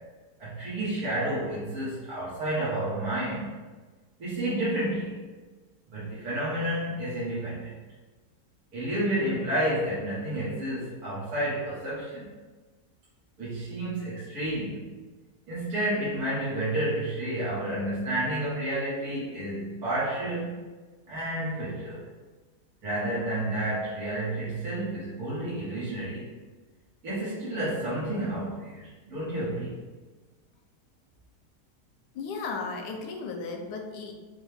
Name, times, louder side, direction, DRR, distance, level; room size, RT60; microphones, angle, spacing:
voice 1, 0.4-3.6 4.2-5.1 5.9-7.7 8.7-12.3 13.4-14.9 15.5-20.7 21.1-22.0 22.8-26.3 27.0-29.8, right 1 dB, 60° right, -10 dB, 1.8 m, -30 dB
voice 2, 32.1-34.1, left 4 dB, 90° left, 2 dB, 1.3 m, -35 dB
5.9 x 2.3 x 3.4 m, 1.3 s
omnidirectional pair, 1.8 m